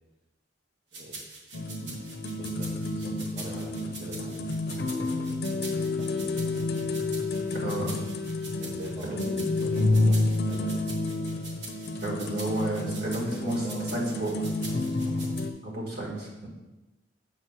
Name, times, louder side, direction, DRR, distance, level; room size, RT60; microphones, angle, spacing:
sound 1, 0.9-15.4, right 3 dB, 85° right, 1.2 m, -44 dB
sound 2, 1.5-15.5, left 2 dB, 60° left, 0.5 m, -29 dB
voice 1, 2.4-7.2 8.5-10.8 12.2-15.4, right 1 dB, 30° right, -4 dB, 0.8 m, -43 dB
voice 2, 7.5-8.0 9.0-9.3 12.0-13.6 13.9-14.3 15.6-16.5, right 1 dB, 60° right, -3 dB, 2.0 m, -32 dB
7.2 x 3.1 x 5.9 m, 1.0 s
head